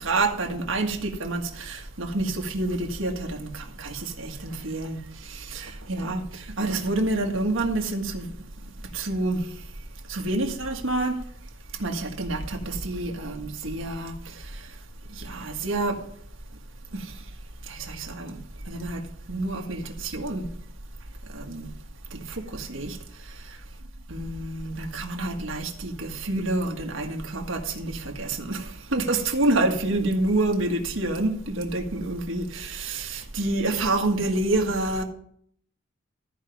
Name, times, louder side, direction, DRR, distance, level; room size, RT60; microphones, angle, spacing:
voice 1, 0.0-5.0 5.3-8.3 8.9-9.4 10.1-11.1 11.8-14.1 15.2-16.0 16.9-17.0 17.7-18.4 18.7-19.0 19.3-20.5 21.3-21.7 22.1-23.0 24.1-35.0, right 2 dB, 70° right, 1.6 m, -28 dB
13.5 x 5.2 x 5.8 m
head